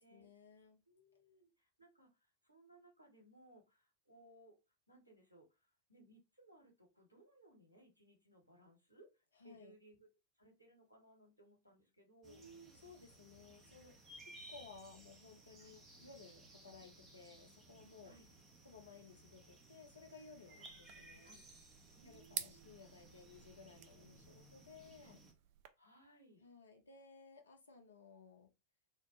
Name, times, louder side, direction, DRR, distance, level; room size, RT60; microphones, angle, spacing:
voice 1, 0.0-0.8 9.4-9.7 12.2-13.9 14.3-18.1 18.6-21.4 22.0-25.2 26.4-28.5, left 4 dB, 75° left, 0.7 m, -58 dB
voice 2, 0.9-4.5 4.9-9.1 9.4-10.1 10.4-12.4 15.6-15.7 18.0-18.3 20.5-20.8 21.2-21.4 22.0-22.7 25.0-25.1 25.8-26.4, right 1 dB, 90° right, 1.0 m, -65 dB
sound 1, 12.2-25.3, right 1 dB, 20° right, 0.8 m, -60 dB
sound 2, 20.6-25.7, right 10 dB, 45° right, 0.3 m, -51 dB
3.2 x 2.1 x 2.8 m
figure-of-eight pair, 90°, 0 cm